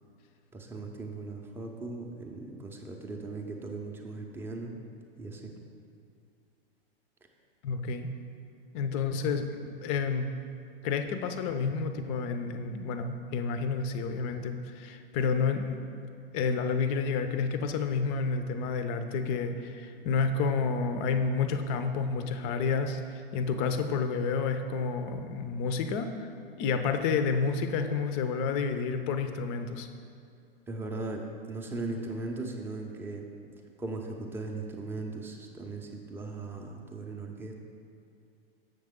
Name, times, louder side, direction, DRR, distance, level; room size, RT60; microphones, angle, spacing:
voice 1, 0.5-4.7 5.2-5.5 30.7-33.3 33.8-37.6, right 3 dB, 10° right, 1 dB, 0.6 m, -38 dB
voice 2, 7.6-8.1 8.7-10.3 10.8-15.8 16.3-26.3 26.6-29.9, left 5 dB, 35° left, 8 dB, 0.5 m, -30 dB
7.3 x 6.6 x 3.6 m, 2.4 s
hypercardioid pair, 115°, 30 cm